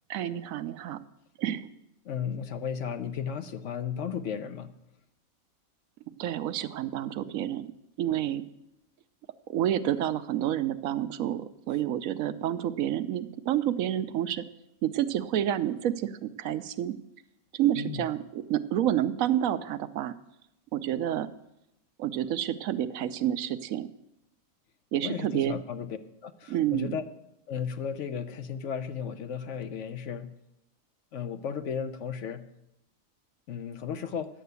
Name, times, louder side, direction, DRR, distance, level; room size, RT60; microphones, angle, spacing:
voice 1, 0.1-1.0 1.4-1.7 6.2-7.7 8.0-8.4 9.5-14.4 14.8-16.9 17.5-20.1 20.7-21.3 22.0-23.9 24.9-25.6 26.5-26.9, right 11 dB, 80° right, 13 dB, 1.0 m, -29 dB
voice 2, 2.0-4.7 17.7-18.1 25.0-26.0 26.2-27.0 27.5-30.3 31.1-32.5 33.5-34.3, left 7 dB, 65° left, 10 dB, 1.0 m, -34 dB
10.0 x 6.6 x 8.1 m, 0.86 s
omnidirectional pair, 1.4 m